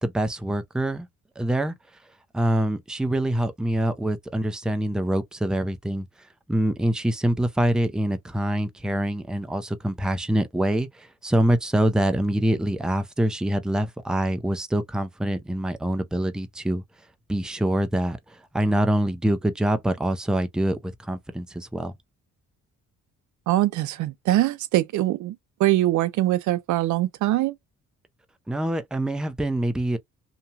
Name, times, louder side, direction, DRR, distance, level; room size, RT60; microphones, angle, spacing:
voice 1, 0.0-1.1 1.4-1.7 2.3-6.1 6.5-16.8 17.3-21.9 28.5-30.0, right 1 dB, ahead, 0.5 m, -25 dB
voice 2, 23.5-25.3 25.6-27.5, right 15 dB, 75° right, 0.5 m, -22 dB
2.9 x 2.2 x 2.7 m
cardioid pair, 90°, 30 cm